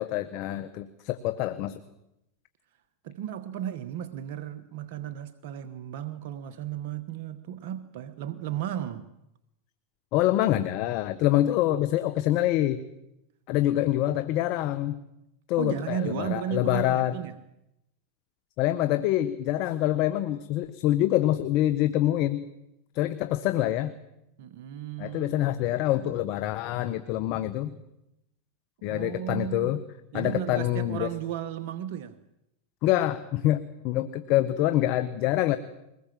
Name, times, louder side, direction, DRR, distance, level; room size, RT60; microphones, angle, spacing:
voice 1, 0.0-1.8 10.1-12.8 13.5-15.0 15.5-17.1 18.6-22.5 22.9-23.9 25.0-27.8 28.8-29.8 30.1-31.1 32.8-35.6, left 14 dB, 55° left, 12 dB, 1.3 m, -26 dB
voice 2, 3.0-9.1 15.5-17.4 24.4-25.4 28.8-29.8 30.1-32.2, right 10 dB, 65° right, 10 dB, 1.3 m, -34 dB
22.5 x 20.0 x 7.7 m, 0.86 s
hypercardioid pair, 110°, 0 cm